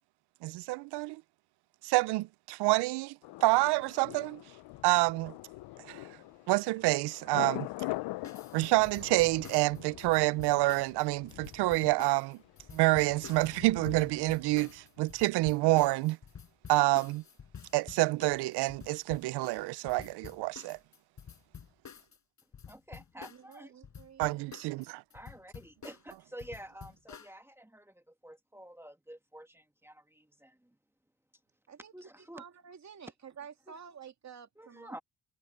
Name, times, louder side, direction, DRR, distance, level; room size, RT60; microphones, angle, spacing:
voice 1, 0.4-1.2 1.8-4.4 4.8-5.3 5.8-6.1 6.5-7.7 8.5-12.4 12.7-16.2 16.7-17.2 17.7-20.8 24.2-25.0, right 20 dB, 90° right, 0.6 m, -28 dB
Thunder, 3.2-15.1 15.4-15.5, left 19 dB, 75° left, 0.6 m, -43 dB
sound 1, 8.2-23.6 23.8-27.3, left 7 dB, 45° left, 4.9 m, -50 dB
voice 2, 22.7-23.7 25.1-30.8 31.9-32.4 33.7-33.8 34.6-35.0, right 1 dB, 5° right, 1.8 m, -49 dB
voice 3, 23.3-24.5 31.7-35.0, right 7 dB, 45° right, 2.4 m, -51 dB
cardioid pair, 85°, 39 cm